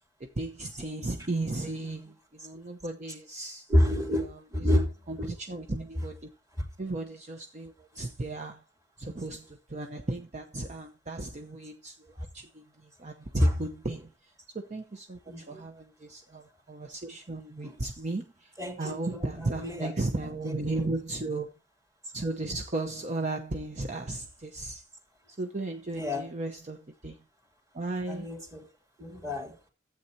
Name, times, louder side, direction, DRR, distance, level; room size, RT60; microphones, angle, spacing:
voice 1, 0.2-3.7 4.2-4.4 4.7-6.3 6.8-8.6 9.0-21.5 22.1-24.9 25.3-27.2 27.7-28.3, right 2 dB, 40° right, 0.8 m, -35 dB
voice 2, 3.7-4.3 4.5-4.8 5.2-5.3 13.4-13.5 15.3-15.6 17.6-17.8 18.6-19.9 20.4-20.8 25.9-26.3 28.1-28.7 29.0-29.5, left 1 dB, 20° right, 2.7 m, -28 dB
14.0 x 8.3 x 2.8 m
head